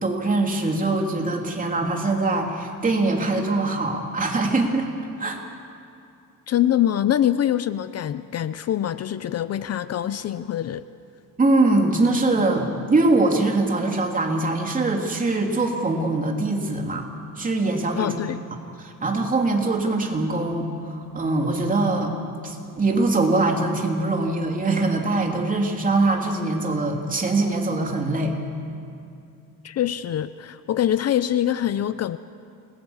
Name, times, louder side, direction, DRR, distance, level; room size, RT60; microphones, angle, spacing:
voice 1, 0.0-4.9 5.2-5.4 11.4-17.0 17.4-18.1 18.8-22.1 22.4-28.4, right 2 dB, 25° right, 1 dB, 3.1 m, -22 dB
voice 2, 6.5-10.8 18.0-18.4 29.6-32.2, left 11 dB, 50° left, 14 dB, 0.6 m, -24 dB
28.0 x 21.5 x 7.3 m, 2.5 s
cardioid pair, 135°, 33 cm